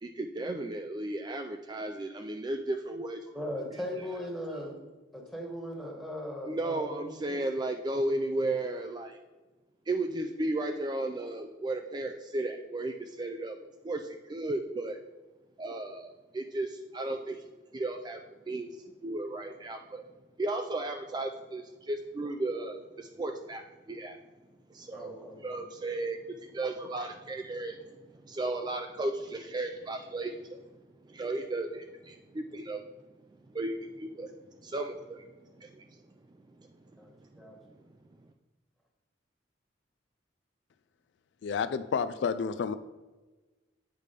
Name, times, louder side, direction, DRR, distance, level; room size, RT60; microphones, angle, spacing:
voice 1, 0.0-3.3 4.5-4.6 6.5-9.2 9.9-15.0 15.6-17.4 17.7-20.0 20.4-24.2 24.7-30.7 31.0-32.8 33.5-36.0 36.5-37.8, right 2 dB, 25° right, 5 dB, 0.3 m, -35 dB
voice 2, 3.3-4.7 5.1-7.4 24.9-25.7 37.0-37.6, equal, ahead, 0 dB, 1.3 m, -39 dB
voice 3, 41.4-42.7, left 6 dB, 70° left, 12 dB, 0.3 m, -30 dB
8.4 x 3.3 x 5.1 m, 1.2 s
head